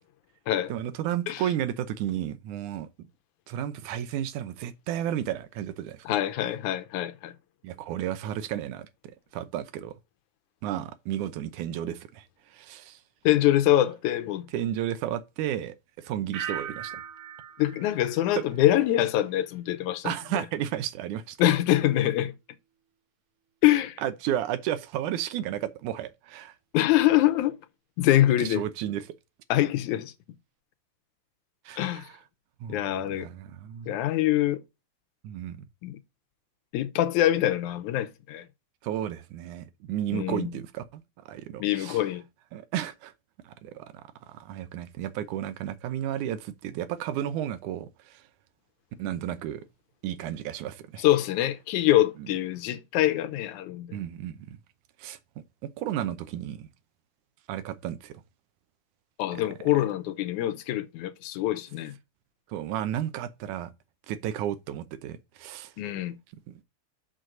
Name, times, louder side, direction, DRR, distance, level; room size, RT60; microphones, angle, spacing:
voice 1, 0.7-3.1 3.5-6.1 7.6-10.0 10.6-13.0 14.5-17.0 18.4-18.5 20.0-21.4 24.0-26.6 28.4-29.0 31.7-32.1 32.6-33.9 35.2-35.6 38.8-42.0 42.5-43.1 43.4-48.3 49.0-49.7 50.0-51.0 53.9-54.6 55.0-55.2 55.6-56.7 57.5-58.2 59.3-59.4 62.5-63.7 64.1-65.7 66.5-66.6, right 11 dB, 85° right, 2.3 m, -33 dB
voice 2, 6.1-7.3 13.2-14.5 17.6-20.4 21.4-22.3 23.6-24.0 26.7-27.6 28.0-28.6 29.5-30.1 31.8-32.1 32.7-33.3 33.9-34.6 35.8-36.0 36.7-38.5 40.1-40.5 41.6-42.2 51.0-54.0 59.2-61.9 65.8-66.2, left 13 dB, 85° left, 2.2 m, -24 dB
sound 1, 16.3-19.2 19.5-20.0, right 9 dB, 65° right, 1.4 m, -40 dB
6.6 x 6.3 x 3.8 m
omnidirectional pair, 3.4 m